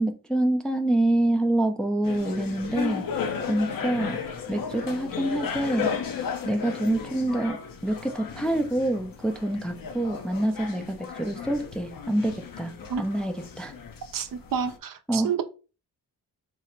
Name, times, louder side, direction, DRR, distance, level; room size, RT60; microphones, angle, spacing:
voice 1, 0.0-4.2 4.5-5.9 6.4-13.7 15.1-15.3, right 1 dB, ahead, 0.4 m, -26 dB
sound 1, 2.0-14.8, left 6 dB, 55° left, 0.7 m, -35 dB
voice 2, 14.1-15.4, right 7 dB, 55° right, 0.6 m, -29 dB
3.8 x 2.1 x 4.2 m
cardioid pair, 75°, 40 cm